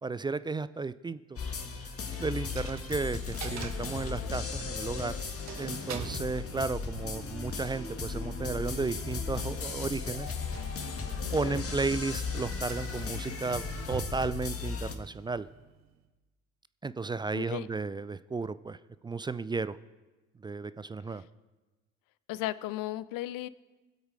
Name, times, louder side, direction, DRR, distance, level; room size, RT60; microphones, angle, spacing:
voice 1, 0.0-1.4 1.8-5.1 5.6-10.3 11.3-15.5 16.8-18.8 19.0-19.8 20.4-21.2, right 4 dB, 10° right, 15 dB, 0.3 m, -34 dB
sound 1, 1.4-14.9, left 5 dB, 35° left, 1.8 m, -36 dB
Coin (dropping), 2.4-16.1, right 8 dB, 40° right, 1.4 m, -46 dB
voice 2, 11.2-11.6 17.3-17.7 21.1-21.2 22.3-23.5, left 15 dB, 50° left, 18 dB, 0.7 m, -36 dB
21.5 x 8.0 x 4.9 m, 1.2 s
figure-of-eight pair, 50°, 41 cm